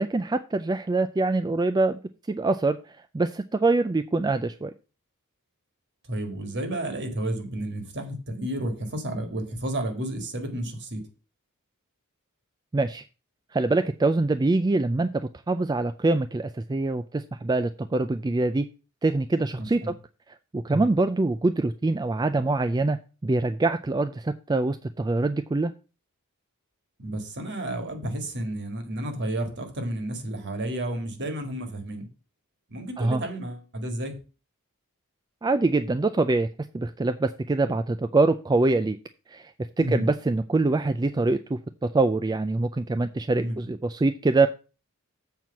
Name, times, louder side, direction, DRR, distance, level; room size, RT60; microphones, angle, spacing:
voice 1, 0.0-2.0 2.3-4.7 12.7-13.0 13.5-18.7 19.0-19.9 20.5-23.0 23.2-25.7 33.0-33.2 35.4-36.5 36.7-39.0 39.3-39.5 39.9-41.6 41.9-44.5, right 2 dB, 20° right, 0.3 m, -24 dB
voice 2, 6.0-11.1 19.6-19.9 20.7-20.9 27.0-32.1 32.7-34.2 39.8-40.1 43.3-43.6, right 1 dB, 50° right, 1.8 m, -31 dB
7.5 x 4.6 x 6.9 m
head